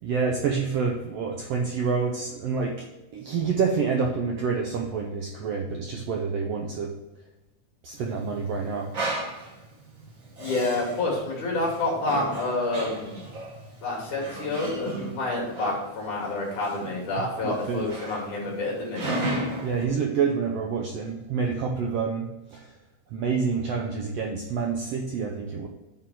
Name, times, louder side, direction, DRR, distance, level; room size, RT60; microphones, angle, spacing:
voice 1, 0.0-2.9 3.1-6.9 7.8-8.9 17.4-17.9 19.6-22.7 23.1-25.7, right 5 dB, 75° right, 1 dB, 1.5 m, -28 dB
Male speech man speaking, 7.9-19.8, right 1 dB, 50° right, 1.0 m, -35 dB
voice 2, 10.4-13.3 13.8-19.2, left 2 dB, 70° left, -3 dB, 3.9 m, -28 dB
8.6 x 3.8 x 6.2 m, 0.99 s
omnidirectional pair, 3.6 m